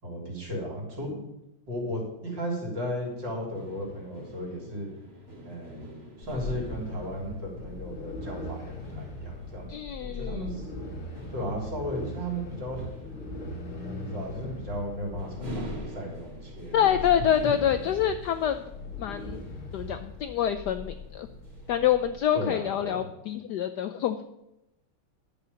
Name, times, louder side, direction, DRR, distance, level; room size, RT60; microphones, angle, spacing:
voice 1, 0.0-1.2 1.7-4.9 5.5-5.9 6.2-9.7 10.0-10.7 11.3-12.9 13.8-17.1 17.4-17.5 22.3-23.1, equal, 55° right, -2 dB, 4.2 m, -35 dB
sound 1, 3.0-21.9, equal, 30° right, 2.3 m, -47 dB
sound 2, 6.2-22.2, left 2 dB, 35° left, 2.1 m, -40 dB
voice 2, 9.7-10.4 16.7-18.6 19.0-19.4 19.7-21.3 21.7-24.2, left 9 dB, 85° left, 10 dB, 0.9 m, -26 dB
11.5 x 7.0 x 7.0 m, 0.87 s
omnidirectional pair, 2.4 m